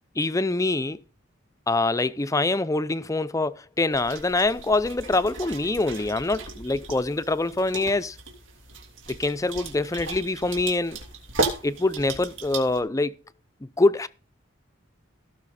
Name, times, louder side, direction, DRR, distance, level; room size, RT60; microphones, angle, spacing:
voice 1, 0.2-1.0 1.7-8.2 9.1-11.0 11.6-13.2 13.6-14.1, left 2 dB, 15° left, 0.5 m, -25 dB
sound 1, 3.9-12.8, right 3 dB, 75° right, 3.1 m, -35 dB
17.0 x 6.1 x 4.2 m
head